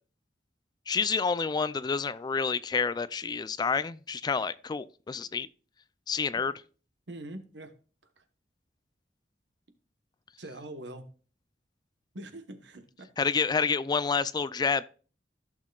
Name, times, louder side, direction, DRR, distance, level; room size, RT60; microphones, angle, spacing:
voice 1, 0.9-5.5 6.1-6.6 13.2-14.8, left 5 dB, 25° left, 0.3 m, -29 dB
voice 2, 7.1-7.7 10.4-11.1 12.1-13.1, right 1 dB, 75° right, 1.2 m, -43 dB
15.0 x 6.4 x 2.3 m
head